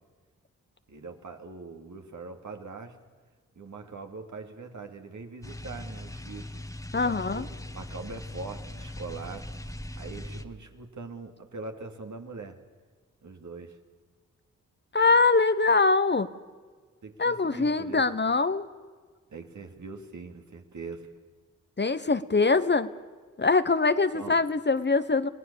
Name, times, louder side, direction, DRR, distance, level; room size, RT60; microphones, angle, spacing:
voice 1, 0.9-3.0 3.5-6.5 7.0-9.5 9.9-12.6 13.2-13.8 17.0-18.1 19.3-21.1 24.1-24.4, right 4 dB, 60° right, 4 dB, 2.7 m, -42 dB
sound 1, 5.4-10.4, left 1 dB, 10° left, 1.6 m, -40 dB
voice 2, 6.9-7.4 14.9-16.3 17.2-18.7 21.8-22.9 23.4-25.3, left 3 dB, 35° left, 12 dB, 1.1 m, -23 dB
26.0 x 18.0 x 7.1 m, 1.5 s
supercardioid pair, 45°, 33 cm